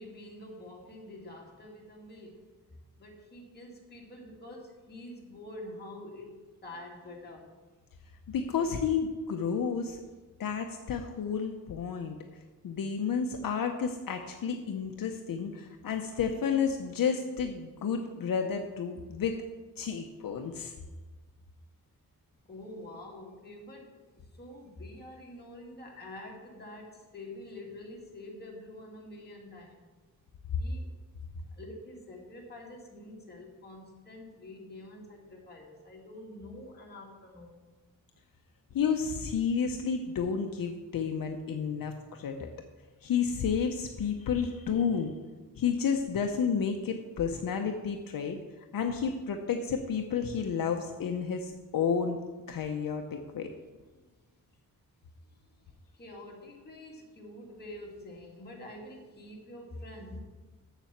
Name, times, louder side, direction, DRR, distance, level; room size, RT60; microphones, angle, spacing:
voice 1, 0.0-2.5 3.0-6.4 6.6-7.5 22.5-29.8 30.6-30.9 31.5-37.7 54.0-54.1 55.9-60.2, left 1 dB, 30° left, -2 dB, 2.2 m, -46 dB
voice 2, 8.3-10.0 10.4-12.2 12.6-19.4 19.8-20.7 38.7-42.5 43.0-45.1 45.6-48.4 48.7-52.2 52.5-53.5, left 6 dB, 70° left, 4 dB, 0.8 m, -31 dB
7.2 x 6.9 x 7.3 m, 1.3 s
wide cardioid pair, 165°, 35 cm